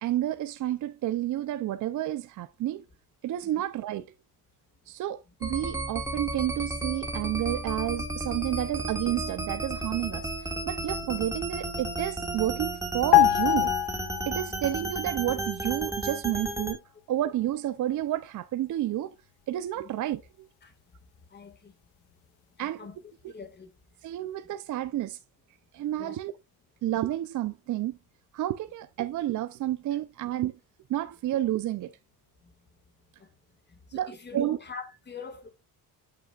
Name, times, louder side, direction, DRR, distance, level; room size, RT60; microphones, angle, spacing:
voice 1, 0.0-2.8 3.2-4.1 4.9-13.7 14.3-16.8 17.1-19.1 19.5-20.5 22.6-22.9 24.0-25.2 25.7-26.3 26.8-28.0 28.3-30.6 30.9-31.9 33.9-34.6, right 13 dB, 55° right, 0.6 m, -30 dB
sound 1, 5.4-16.7, right 1 dB, 10° right, 2.1 m, -33 dB
sound 2, 13.1-14.8 15.0-15.2, left 16 dB, 80° left, 0.6 m, -23 dB
voice 2, 21.3-21.7 22.6-23.0 23.3-23.7 26.0-26.2 33.9-35.5, left 5 dB, 30° left, 2.1 m, -43 dB
9.0 x 8.8 x 2.4 m
cardioid pair, 125°, 37 cm